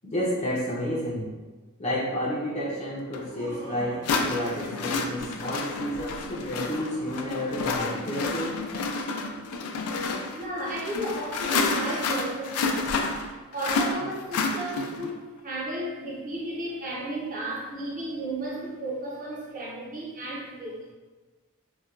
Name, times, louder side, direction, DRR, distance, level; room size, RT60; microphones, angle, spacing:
voice 1, 0.0-1.3 1.8-8.6, equal, 30° left, -6 dB, 0.5 m, -30 dB
sound 1, 3.1-3.2 4.0-15.1, left 4 dB, 90° left, 0.4 m, -30 dB
Laughter, 3.1-5.2 5.7-8.1, right 1 dB, 75° right, 1.1 m, -46 dB
voice 2, 10.3-12.9 13.5-20.9, right 1 dB, 40° right, -5 dB, 0.6 m, -34 dB
4.0 x 2.2 x 2.4 m, 1.3 s
head